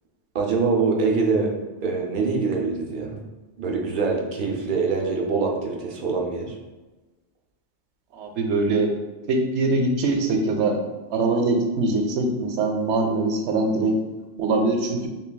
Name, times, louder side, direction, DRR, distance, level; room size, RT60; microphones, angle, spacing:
voice 1, 0.3-1.5 1.8-3.2 3.6-6.6, right 4 dB, 55° right, 0 dB, 0.7 m, -24 dB
voice 2, 8.1-8.9 9.3-10.8 11.1-13.9 14.4-15.1, right 2 dB, 85° right, 4 dB, 0.9 m, -22 dB
5.7 x 2.2 x 2.2 m, 1.2 s
omnidirectional pair, 1.1 m